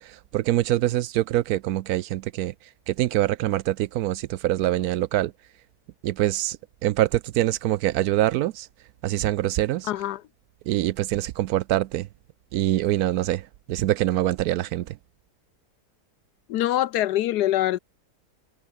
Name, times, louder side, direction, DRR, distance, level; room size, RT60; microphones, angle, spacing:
voice 1, 0.0-2.5 2.9-5.3 6.0-8.7 9.0-9.9 10.7-12.1 12.5-15.0, right 14 dB, 70° right, 1.0 m, -24 dB
voice 2, 9.9-10.2 16.5-17.8, left 14 dB, 75° left, 1.2 m, -24 dB
omnidirectional pair, 1.8 m